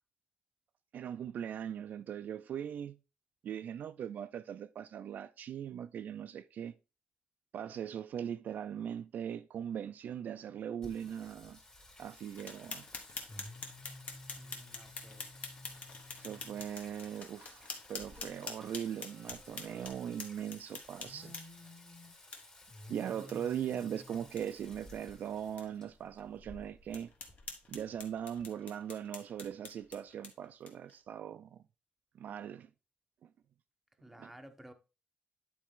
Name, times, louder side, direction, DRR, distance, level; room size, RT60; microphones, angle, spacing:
voice 1, 0.9-3.0 3.4-6.7 7.5-11.6 12.0-12.9 16.2-21.4 22.9-27.1 27.7-31.6 32.1-32.7 33.2-33.3 34.2-34.3, right 9 dB, 65° right, 0.4 m, -40 dB
Singing, 10.8-28.4, left 1 dB, 30° left, 2.2 m, -54 dB
sound 1, 12.4-21.7 22.3-22.4 22.8-22.9 23.3-23.4 23.7-23.8 24.2-24.4 24.9-25.0 25.6-25.7 26.2-26.3 26.9-30.9, left 4 dB, 50° left, 1.3 m, -46 dB
voice 2, 14.4-15.3 23.2-23.3 34.0-34.7, right 1 dB, 5° right, 0.8 m, -54 dB
10.0 x 4.2 x 3.6 m
wide cardioid pair, 150°, 3 cm